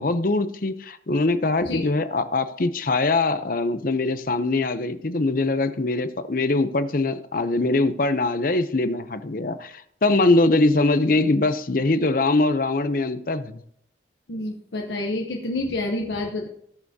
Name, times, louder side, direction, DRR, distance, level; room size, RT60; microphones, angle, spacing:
voice 1, 0.0-13.6, left 2 dB, 50° left, 11 dB, 0.7 m, -22 dB
voice 2, 14.3-16.5, left 2 dB, 75° left, 1 dB, 1.0 m, -28 dB
18.5 x 6.8 x 2.8 m, 0.68 s
head